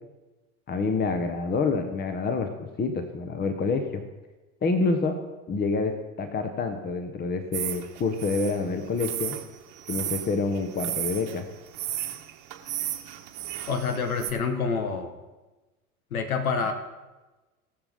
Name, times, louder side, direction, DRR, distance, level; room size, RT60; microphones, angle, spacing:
voice 1, 0.7-4.0 4.6-5.2 5.5-5.9 6.2-9.4 9.9-11.4, left 4 dB, 20° left, 7 dB, 1.1 m, -27 dB
sound 1, 7.5-14.3, right 12 dB, 45° right, 1.3 m, -34 dB
voice 2, 13.7-15.1 16.1-16.7, left 5 dB, 75° left, 7 dB, 1.3 m, -27 dB
20.0 x 7.2 x 3.6 m, 1.2 s
figure-of-eight pair, 80°, 43 cm